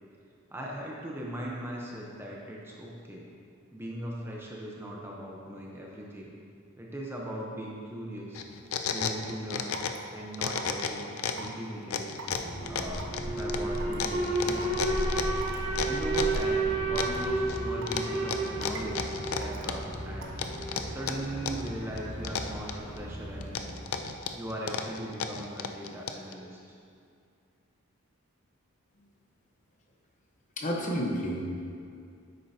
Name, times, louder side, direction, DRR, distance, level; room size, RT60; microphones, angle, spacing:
voice 1, 0.5-3.3 3.7-6.3 6.8-8.4 8.9-9.7 10.1-12.1 12.7-14.7 15.8-20.4 20.9-23.8 24.3-26.6, right 1 dB, 10° right, -3 dB, 0.7 m, -39 dB
sound 1, 8.3-10.1 10.3-11.5 11.9-16.4 17.0-17.6 17.9-20.0 20.4-21.7 22.0-23.0 23.4-26.3, left 6 dB, 75° left, 0.5 m, -33 dB
Raindrop / Water tap faucet / Drip, 9.7-10.0 10.6-10.8 11.4-11.5 12.2-12.4 13.0-13.3 13.8-14.0 14.6-14.7 15.4-15.6 16.2-16.4 17.0-17.2 17.8-18.1 18.6-18.9 19.4-19.6 20.2-20.5, right 4 dB, 65° right, 0.8 m, -43 dB
Alarm, 12.3-24.3, right 2 dB, 45° right, 2.2 m, -32 dB
voice 2, 30.6-31.4, equal, 35° left, 0 dB, 0.9 m, -30 dB
10.0 x 8.2 x 2.8 m, 2.4 s
head